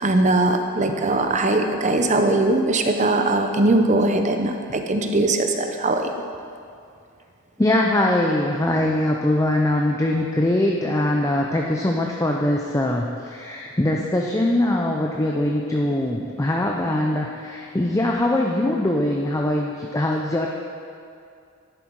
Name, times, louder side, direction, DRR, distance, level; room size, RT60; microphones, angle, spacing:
voice 1, 0.0-6.1, right 2 dB, 35° right, 5 dB, 0.7 m, -20 dB
voice 2, 7.6-20.5, left 1 dB, 15° left, 0 dB, 0.5 m, -22 dB
11.0 x 8.1 x 4.7 m, 2.4 s
head